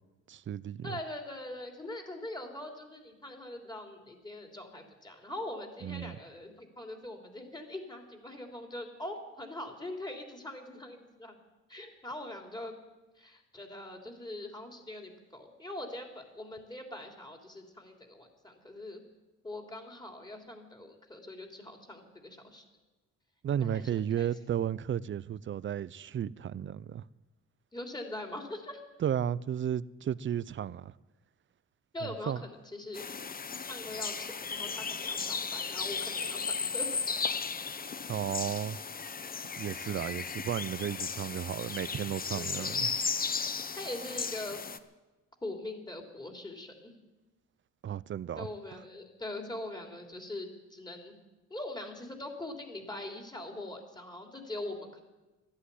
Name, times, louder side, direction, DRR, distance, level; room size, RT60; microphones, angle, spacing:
voice 1, 0.3-1.0 5.8-6.2 23.4-27.0 29.0-30.9 32.3-32.4 38.1-38.8 39.6-42.9 47.8-48.5, right 9 dB, 40° right, 0.5 m, -33 dB
voice 2, 0.8-11.4 11.7-12.8 13.2-19.0 19.4-22.6 23.6-24.3 27.7-28.8 31.9-33.0 33.7-37.0 42.3-42.9 43.8-44.6 45.4-46.9 48.3-51.1 51.5-55.0, left 1 dB, 15° left, 3.3 m, -42 dB
sound 1, 32.9-44.8, left 5 dB, 30° left, 0.9 m, -35 dB
13.0 x 11.5 x 9.8 m
cardioid pair, 90°, 30 cm